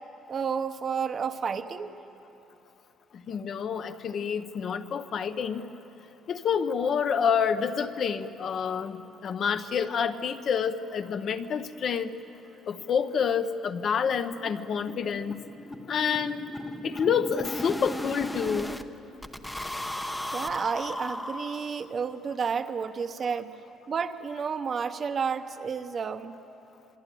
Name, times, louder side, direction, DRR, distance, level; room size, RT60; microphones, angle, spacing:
voice 1, 0.3-1.9 20.3-23.5 23.9-26.4, right 6 dB, 30° right, 8 dB, 0.9 m, -31 dB
voice 2, 3.3-5.7 6.3-9.0 9.2-12.2 12.7-15.4 15.9-16.5 16.8-18.7, left 7 dB, 40° left, 9 dB, 0.9 m, -28 dB
sound 1, 12.0-12.1 12.4-12.5 12.8-12.9 13.2-13.4 13.6-18.8 19.2-22.0, left 1 dB, 5° left, 0.8 m, -36 dB
26.5 x 23.0 x 9.2 m, 2.9 s
cardioid pair, 170°, 0 cm